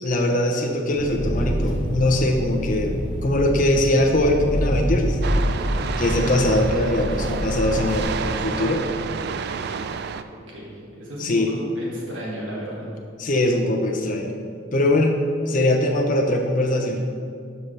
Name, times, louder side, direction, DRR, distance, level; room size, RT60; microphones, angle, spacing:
voice 1, 0.0-5.2 6.0-8.8 11.2-11.5 13.2-14.3 14.7-15.1 15.5-17.1, left 1 dB, 40° left, 2 dB, 0.6 m, -21 dB
Engine, 0.9-8.0, equal, 25° left, 1.5 m, -26 dB
sound 1, 5.2-10.2, right 5 dB, 55° right, 0.3 m, -30 dB
voice 2, 10.3-12.9, equal, 75° right, -5 dB, 1.9 m, -34 dB
11.0 x 5.5 x 3.3 m, 2.3 s
head